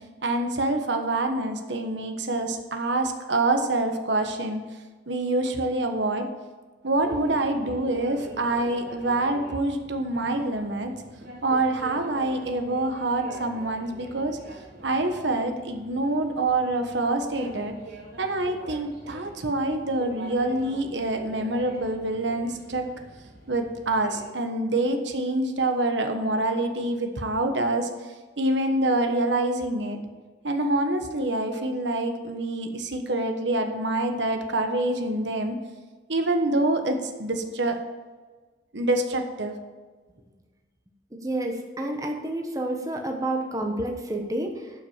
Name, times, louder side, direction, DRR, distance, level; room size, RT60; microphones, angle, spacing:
voice 1, 0.2-4.6 5.1-6.3 6.8-10.9 11.4-14.4 14.8-17.8 18.2-22.9 23.5-27.9 28.4-30.0 30.4-35.6 36.1-37.8 38.7-39.6, right 2 dB, 70° right, 6 dB, 1.2 m, -26 dB
sound 1, 6.9-24.3, right 2 dB, 50° right, 3.1 m, -45 dB
voice 2, 41.2-44.7, right 1 dB, 20° right, 2 dB, 1.1 m, -29 dB
11.5 x 6.0 x 7.3 m, 1.4 s
head